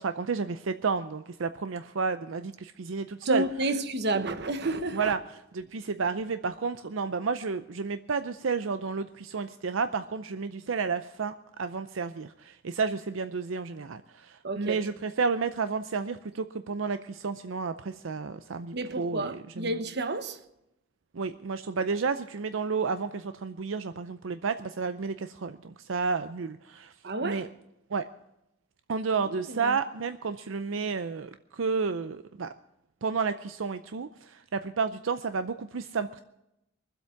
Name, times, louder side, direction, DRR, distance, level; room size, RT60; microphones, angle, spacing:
voice 1, 0.0-3.4 4.9-5.2 5.5-19.7 21.1-26.9 27.2-27.5 27.9-28.0 28.9-32.5 33.0-36.2, right 5 dB, 80° right, 0.6 m, -31 dB
voice 2, 3.2-5.1 14.4-14.9 18.7-20.4 27.0-27.5 29.2-29.8, right 2 dB, 60° right, 1.1 m, -31 dB
23.5 x 8.0 x 5.8 m
head